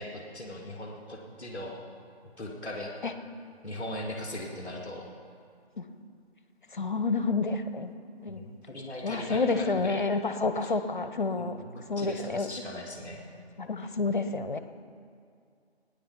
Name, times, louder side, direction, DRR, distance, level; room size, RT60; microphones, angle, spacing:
voice 1, 0.0-1.8 2.4-2.9 3.6-5.0 8.3-10.0 10.6-10.7 11.4-13.2, left 1 dB, 5° left, -6 dB, 1.4 m, -39 dB
voice 2, 6.8-7.9 8.2-8.4 9.0-11.6 11.9-12.5 13.6-14.6, left 3 dB, 45° left, 9 dB, 0.9 m, -29 dB
16.5 x 9.9 x 5.7 m, 2.3 s
figure-of-eight pair, 155°, 33 cm